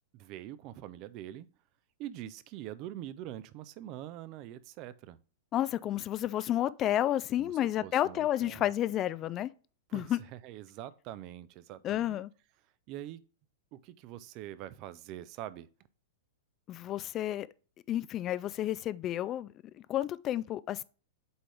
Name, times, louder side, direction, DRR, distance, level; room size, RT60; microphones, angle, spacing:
voice 1, 0.1-1.5 2.0-5.2 7.4-8.7 9.9-12.2 12.9-13.2 13.7-15.7, right 12 dB, 45° right, 0.5 m, -44 dB
voice 2, 5.5-9.5 9.9-10.2 11.8-12.3 16.7-17.5 17.9-19.5 19.9-20.8, left 12 dB, 35° left, 0.3 m, -31 dB
7.9 x 3.8 x 3.3 m
hypercardioid pair, 100°, 0 cm